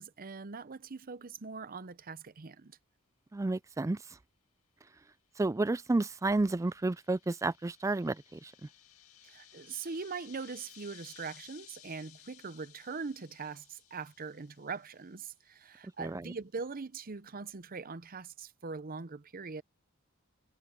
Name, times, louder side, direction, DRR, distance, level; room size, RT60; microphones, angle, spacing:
voice 1, 0.0-2.8 9.2-19.6, right 4 dB, 45° right, 0.7 m, -42 dB
voice 2, 3.3-4.2 5.4-8.7 16.0-16.3, right 2 dB, 15° right, 0.3 m, -31 dB
sound 1, 5.8-15.4, left 12 dB, 85° left, 1.9 m, -58 dB
head